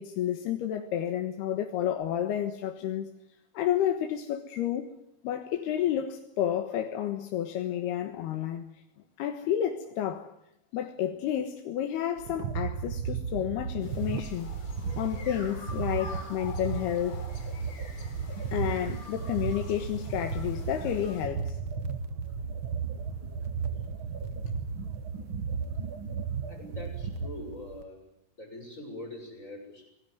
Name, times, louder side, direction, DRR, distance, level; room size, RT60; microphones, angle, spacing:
voice 1, 0.0-3.1 3.6-4.9 5.2-8.6 9.2-10.3 10.7-14.5 15.0-17.2 18.5-21.6, left 10 dB, 80° left, 3.4 m, -30 dB
sound 1, 12.2-27.8, right 6 dB, 70° right, 1.2 m, -34 dB
sound 2, 13.8-21.2, left 3 dB, 35° left, 4.3 m, -47 dB
voice 2, 26.5-28.0 28.4-29.9, left 1 dB, 20° left, 7.3 m, -43 dB
26.0 x 20.0 x 9.3 m
omnidirectional pair, 4.5 m